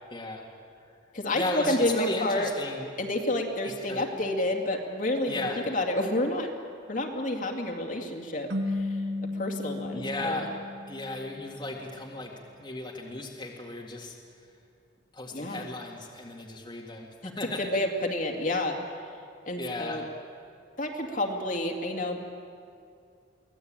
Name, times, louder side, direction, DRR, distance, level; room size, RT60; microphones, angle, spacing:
voice 1, 0.1-0.4 1.3-2.9 3.6-4.1 5.3-5.6 9.9-10.6 10.9-12.3 12.6-14.2 15.1-17.8 19.6-20.0, left 2 dB, 25° left, -2 dB, 2.0 m, -35 dB
voice 2, 1.1-2.5 3.0-6.5 6.9-9.0 9.3-10.5 15.3-15.6 17.6-18.8 19.5-20.0 20.8-22.2, left 1 dB, 45° left, 3 dB, 2.3 m, -29 dB
sound 1, 8.5-11.7, left 2 dB, 70° right, 2.1 m, -34 dB
24.0 x 17.5 x 8.8 m, 2.5 s
head